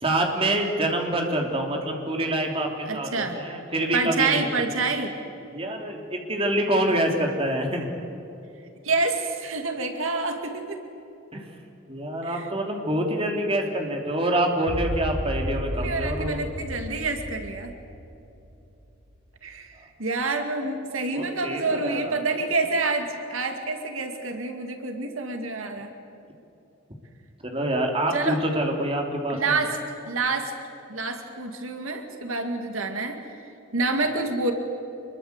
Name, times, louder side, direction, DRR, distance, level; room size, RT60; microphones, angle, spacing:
voice 1, 0.0-4.5 4.8-4.9 5.5-7.9 11.3-11.4 11.9-16.4 21.1-22.4 27.4-29.6, right 1 dB, 25° right, 2 dB, 3.2 m, -26 dB
voice 2, 2.9-3.4 3.9-5.1 8.8-10.8 12.2-12.5 15.8-17.7 19.4-19.7 20.0-25.9 28.1-28.4 29.3-29.8 30.1-30.5 30.9-33.2 33.7-34.5, right 3 dB, 85° right, 5 dB, 2.4 m, -27 dB
basscapes Boommshot, 14.7-19.0, equal, 55° right, 1.8 m, -33 dB
25.5 x 22.5 x 8.2 m, 2.9 s
head